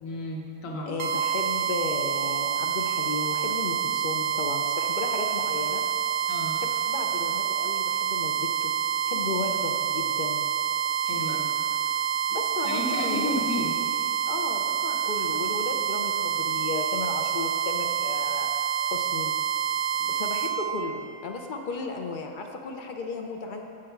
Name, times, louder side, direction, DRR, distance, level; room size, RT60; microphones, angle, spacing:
voice 1, 0.0-1.0 6.3-6.6 11.0-11.5 12.6-13.7, left 1 dB, 75° left, -1 dB, 1.4 m, -32 dB
voice 2, 0.9-5.8 6.9-8.7 9.0-10.4 12.3-13.3 14.3-18.5 18.9-19.3 20.0-23.7, left 4 dB, 55° left, 3 dB, 0.6 m, -34 dB
sound 1, 1.0-20.5, right 9 dB, 70° right, 1.0 m, -27 dB
7.4 x 6.0 x 4.5 m, 2.7 s
omnidirectional pair, 1.4 m